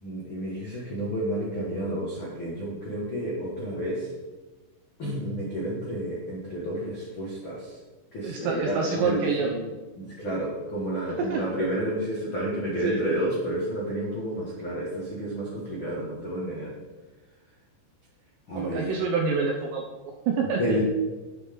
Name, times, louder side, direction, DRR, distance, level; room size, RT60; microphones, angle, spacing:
voice 1, 0.0-4.1 5.0-7.8 8.1-16.7 18.5-18.9 20.6-20.8, right 1 dB, 60° left, -6 dB, 1.3 m, -31 dB
voice 2, 8.2-9.5 11.2-11.5 12.6-13.0 18.6-19.8 20.3-20.8, right 4 dB, 75° right, 1 dB, 2.6 m, -27 dB
11.0 x 9.2 x 4.0 m, 1.2 s
omnidirectional pair, 5.9 m